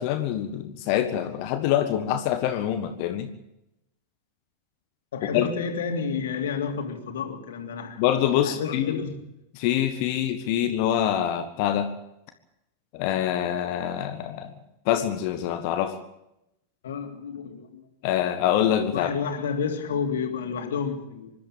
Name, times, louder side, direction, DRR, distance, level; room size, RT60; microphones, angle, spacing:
voice 1, 0.0-3.3 5.3-5.5 8.0-9.0 9.5-11.9 12.9-14.5 14.8-16.0 18.0-19.1, left 11 dB, 45° left, 8 dB, 1.6 m, -25 dB
voice 2, 5.1-8.0 8.4-9.2 16.8-17.9 18.9-21.3, left 6 dB, 60° left, 4 dB, 3.2 m, -30 dB
25.5 x 12.0 x 8.9 m, 0.86 s
figure-of-eight pair, 90°, 0 cm